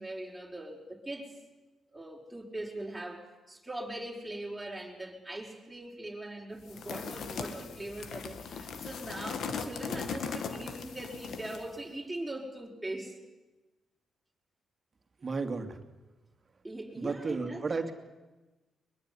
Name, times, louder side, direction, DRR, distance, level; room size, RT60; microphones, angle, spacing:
voice 1, 0.0-1.4 1.9-13.2 16.6-17.9, right 1 dB, 5° right, -2 dB, 5.4 m, -41 dB
sound 1, 6.7-11.7, left 6 dB, 70° left, 2.1 m, -39 dB
voice 2, 15.2-15.8 17.0-17.9, right 4 dB, 40° right, 7 dB, 2.7 m, -33 dB
22.5 x 21.5 x 9.8 m, 1.1 s
cardioid pair, 70°, 0 cm